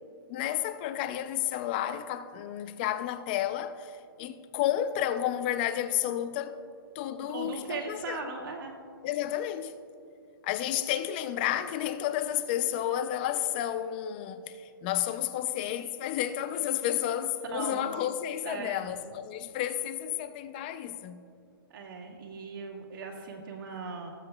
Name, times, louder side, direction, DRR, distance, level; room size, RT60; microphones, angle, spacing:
voice 1, 0.3-6.6 6.9-8.3 9.0-9.7 10.4-21.2, left 11 dB, 25° left, 0.4 m, -31 dB
voice 2, 7.3-8.8 17.5-17.9 18.4-18.8 21.7-24.1, right 4 dB, 65° right, 1.8 m, -38 dB
18.5 x 7.7 x 2.2 m
hypercardioid pair, 160°, 12 cm